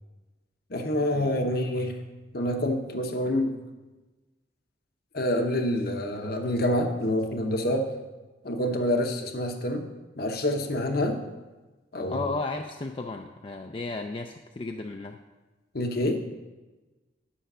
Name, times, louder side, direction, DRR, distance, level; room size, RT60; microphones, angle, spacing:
voice 1, 0.7-1.9 2.3-3.5 5.1-7.9 8.4-9.9 10.2-11.2 11.9-12.3 15.7-16.2, left 1 dB, 55° left, 5 dB, 1.0 m, -27 dB
voice 2, 12.1-15.2, left 3 dB, 30° left, 4 dB, 0.4 m, -34 dB
10.0 x 6.4 x 5.5 m, 1.2 s
head